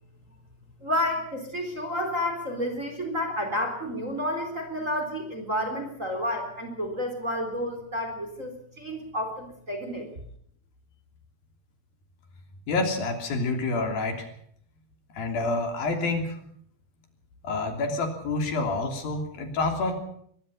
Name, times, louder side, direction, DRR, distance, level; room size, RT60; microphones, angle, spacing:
voice 1, 0.8-10.1, left 1 dB, 20° right, 5 dB, 3.9 m, -30 dB
voice 2, 12.7-14.3 15.1-16.4 17.4-19.9, left 3 dB, 60° left, 5 dB, 4.8 m, -28 dB
23.0 x 21.5 x 5.6 m, 0.66 s
omnidirectional pair, 4.7 m